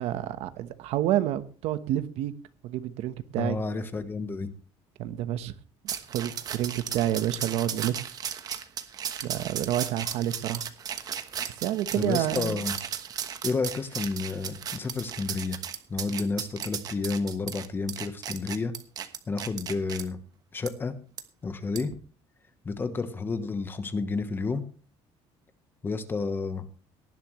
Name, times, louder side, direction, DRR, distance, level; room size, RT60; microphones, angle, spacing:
voice 1, 0.0-2.3 2.6-3.6 5.0-5.5 6.1-8.1 9.2-10.6 11.6-12.6, right 12 dB, 70° right, 11 dB, 1.2 m, -29 dB
voice 2, 3.4-4.5 11.9-12.7 13.4-15.6 15.9-18.7 19.3-20.2 20.5-20.9 21.4-21.9 22.6-24.6 25.8-26.7, left 4 dB, 20° left, 11 dB, 1.1 m, -30 dB
sound 1, 5.9-20.0 20.7-20.8 21.2-21.3 21.8-21.9, right 8 dB, 35° right, 1.2 m, -35 dB
18.0 x 11.5 x 3.2 m, 0.38 s
cardioid pair, 175°, 11 cm